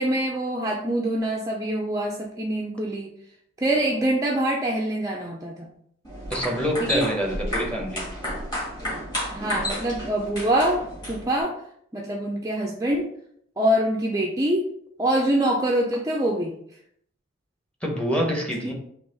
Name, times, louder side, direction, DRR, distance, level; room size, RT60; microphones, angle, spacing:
voice 1, 0.0-3.1 3.6-5.7 6.8-7.1 9.3-11.6 11.9-13.1 13.6-14.7 15.0-16.5 18.6-18.7, right 1 dB, 15° right, -1 dB, 0.4 m, -25 dB
sound 1, 6.0-11.4, equal, 20° left, 1.7 m, -32 dB
voice 2, 6.3-8.0 17.8-18.7, equal, 5° left, -1 dB, 0.8 m, -26 dB
3.9 x 2.9 x 3.9 m, 0.68 s
head